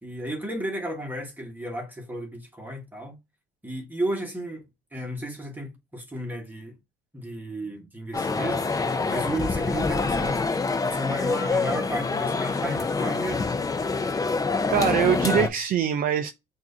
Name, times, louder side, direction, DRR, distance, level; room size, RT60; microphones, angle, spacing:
voice 1, 0.0-3.2 3.6-4.6 4.9-6.7 7.1-8.8 9.1-13.5, right 1 dB, 10° right, 1.5 m, -33 dB
sound 1, 8.1-15.5, left 4 dB, 20° left, 0.6 m, -26 dB
voice 2, 14.7-16.3, right 8 dB, 55° right, 0.5 m, -23 dB
5.9 x 2.7 x 2.7 m
cardioid pair, 110°, 17 cm